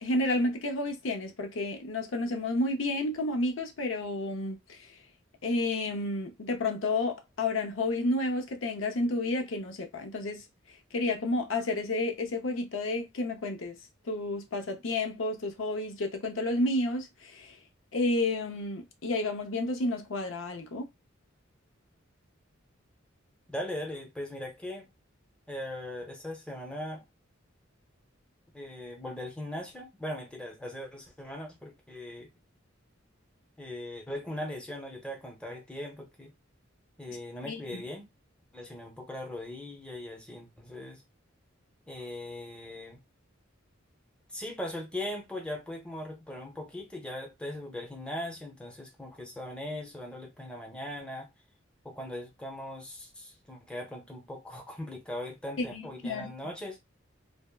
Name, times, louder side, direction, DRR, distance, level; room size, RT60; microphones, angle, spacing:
voice 1, 0.0-4.9 5.4-13.8 14.0-17.6 17.9-20.9 37.5-37.8 55.6-56.3, left 2 dB, 80° left, 0.6 m, -31 dB
voice 2, 23.5-24.9 25.5-27.0 28.5-32.3 33.6-36.3 37.0-38.1 38.5-41.0 41.9-43.0 44.3-51.3 51.8-56.8, left 1 dB, 5° left, 0.7 m, -39 dB
3.4 x 2.0 x 2.3 m
head